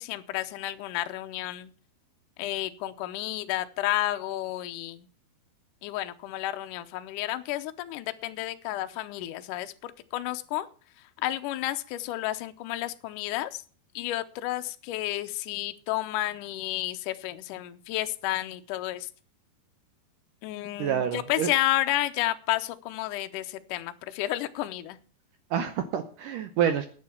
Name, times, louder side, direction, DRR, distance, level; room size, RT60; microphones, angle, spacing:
voice 1, 0.0-1.7 2.4-5.1 5.8-10.7 11.2-13.6 14.0-19.1 20.4-25.0, left 15 dB, 80° left, 9 dB, 1.9 m, -31 dB
voice 2, 20.8-21.5 25.5-26.9, right 9 dB, 75° right, 9 dB, 2.0 m, -27 dB
10.5 x 8.8 x 7.1 m, 0.40 s
omnidirectional pair, 4.7 m